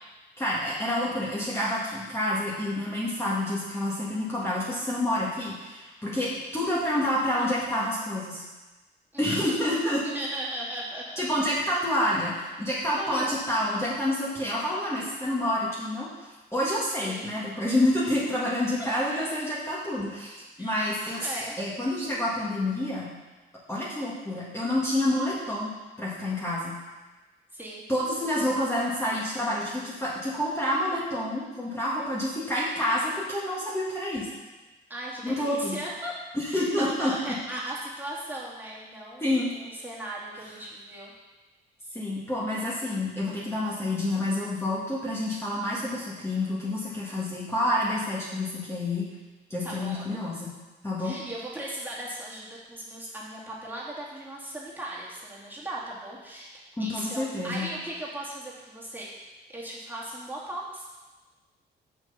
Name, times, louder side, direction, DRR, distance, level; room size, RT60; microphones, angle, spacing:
voice 1, 0.4-8.4 9.2-10.1 11.2-16.1 16.5-23.1 23.7-25.7 26.0-26.8 27.9-34.3 35.2-35.8 36.3-37.1 39.2-39.5 41.9-49.1 49.5-50.5 50.8-51.1 56.8-57.7, left 1 dB, 10° left, -7 dB, 1.9 m, -28 dB
voice 2, 9.1-9.6 10.0-11.0 13.0-13.4 17.0-17.3 18.6-18.7 20.6-20.7 21.2-21.6 27.5-27.8 34.9-36.1 36.5-41.1 49.6-50.2 51.0-56.5 56.8-60.9, right 1 dB, 10° right, -6 dB, 2.4 m, -37 dB
6.4 x 6.1 x 5.7 m, 1.2 s
cardioid pair, 90°, 20 cm